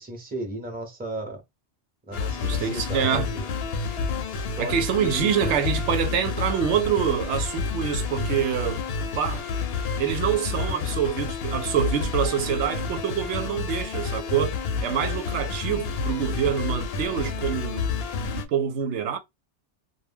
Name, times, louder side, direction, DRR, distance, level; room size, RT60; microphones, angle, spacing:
voice 1, 0.0-1.4 2.1-3.4 4.2-5.6, right 1 dB, 10° right, 0.6 m, -35 dB
sound 1, 2.1-18.4, left 4 dB, 65° left, 0.7 m, -29 dB
voice 2, 2.4-3.3 4.6-8.8 9.2-9.4 10.0-17.8 18.3-19.2, right 8 dB, 85° right, 0.9 m, -26 dB
2.2 x 2.1 x 3.4 m
omnidirectional pair, 1.2 m